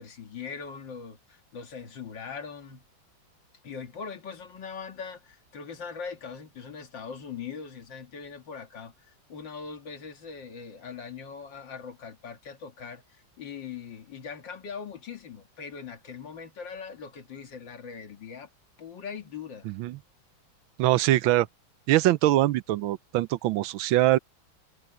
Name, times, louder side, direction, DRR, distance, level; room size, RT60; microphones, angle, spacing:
voice 1, 0.0-2.8 3.6-18.5 18.8-19.7, left 6 dB, 70° left, 2.5 m, -41 dB
voice 2, 19.7-20.0 20.8-21.5 21.9-24.2, right 15 dB, 90° right, 1.4 m, -23 dB
omnidirectional pair, 2.1 m